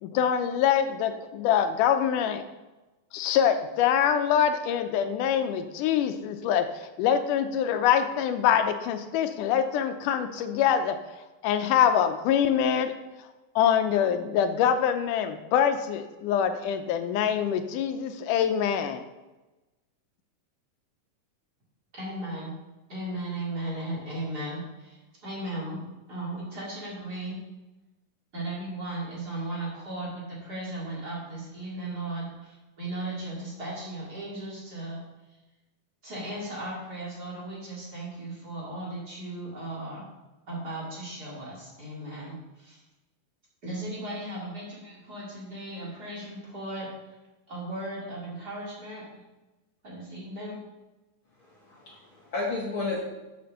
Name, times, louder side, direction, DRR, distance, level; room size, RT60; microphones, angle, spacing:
voice 1, 0.0-2.4 3.1-11.0 11.4-12.9 13.6-19.0, left 8 dB, 85° left, 8 dB, 2.1 m, -24 dB
voice 2, 21.9-22.5 22.9-27.4 28.3-35.0 36.0-40.1 40.5-42.8 43.6-46.9 47.5-49.0 49.8-50.6, right 1 dB, 30° right, -6 dB, 3.0 m, -36 dB
voice 3, 51.4-53.0, left 3 dB, 50° left, -4 dB, 1.8 m, -32 dB
7.0 x 6.7 x 6.4 m, 1.1 s
omnidirectional pair, 3.7 m